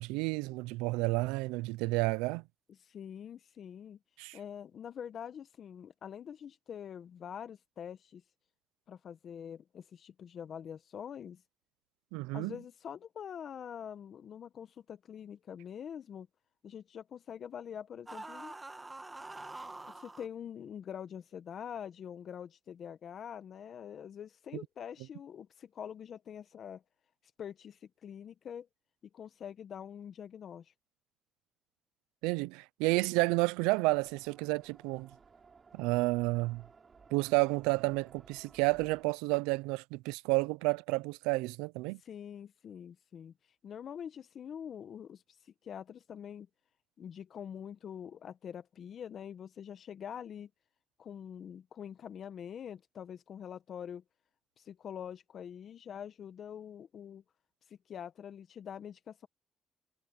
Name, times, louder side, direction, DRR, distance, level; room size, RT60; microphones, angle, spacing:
voice 1, 0.0-2.4 4.2-4.4 12.1-12.5 32.2-35.1 35.7-36.6 37.1-42.0, right 24 dB, 90° right, 0.5 m, -31 dB
voice 2, 2.8-4.0 4.3-8.2 8.9-11.4 12.3-16.3 16.6-18.5 19.9-26.8 27.4-28.7 29.1-30.7 42.0-43.3 43.6-46.5 47.0-50.5 51.0-54.0 54.6-57.2 57.7-59.3, left 8 dB, 60° left, 1.3 m, -45 dB
sound 1, 18.1-20.3, right 2 dB, 20° right, 2.2 m, -45 dB
sound 2, 34.0-39.1, right 5 dB, 45° right, 3.8 m, -59 dB
supercardioid pair, 55°, 0 cm